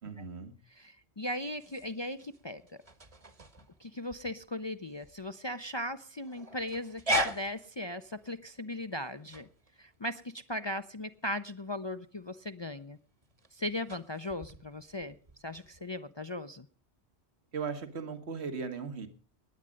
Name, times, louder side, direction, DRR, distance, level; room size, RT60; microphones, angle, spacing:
voice 1, 0.0-0.5 17.5-19.1, right 5 dB, 75° right, 8 dB, 1.7 m, -37 dB
voice 2, 0.8-2.6 3.8-9.5 9.8-13.0 13.5-15.2 15.4-16.7, left 1 dB, 30° left, 9 dB, 0.6 m, -38 dB
sound 1, 1.4-15.8, equal, 35° right, 1.2 m, -40 dB
19.5 x 8.8 x 5.1 m, 0.40 s
omnidirectional pair, 1.1 m